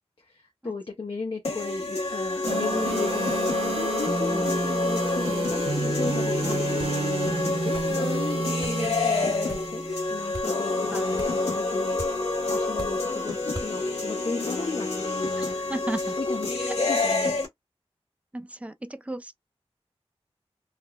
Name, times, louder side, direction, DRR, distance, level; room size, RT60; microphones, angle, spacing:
voice 1, 0.2-3.4 3.8-7.0 7.6-9.8 10.1-15.1 16.2-16.5 16.8-17.4, left 3 dB, 55° left, 0.6 m, -36 dB
sound 1, 1.4-17.4, left 3 dB, 85° left, 1.1 m, -28 dB
sound 2, 2.5-10.5, right 3 dB, 60° right, 0.9 m, -31 dB
sound 3, 6.8-7.0 7.7-8.0 8.6-8.8 9.5-9.7 10.3-10.5 11.2-11.4 12.0-12.2 12.8-13.1 13.5-13.7, right 1 dB, 45° right, 1.6 m, -39 dB
voice 2, 15.4-16.2 16.6-16.8 18.3-19.3, right 1 dB, 10° right, 0.4 m, -35 dB
3.4 x 2.1 x 2.2 m
wide cardioid pair, 50°, 11 cm